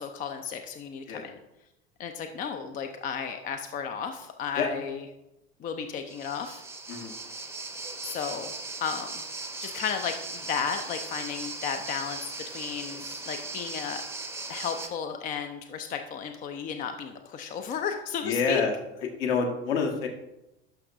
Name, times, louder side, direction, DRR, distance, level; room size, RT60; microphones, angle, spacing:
voice 1, 0.0-1.3 2.0-5.0 5.6-6.6 8.0-8.5 8.8-9.2 9.6-12.2 12.5-14.0 14.5-18.6, left 7 dB, 25° left, 6 dB, 0.5 m, -33 dB
sound 1, 6.1-14.9, right 3 dB, 10° right, 0.7 m, -38 dB
voice 2, 12.8-13.2 18.2-18.7 19.2-20.1, left 5 dB, 55° left, 2 dB, 1.3 m, -28 dB
11.0 x 5.8 x 2.6 m, 0.92 s
figure-of-eight pair, 75°, 33 cm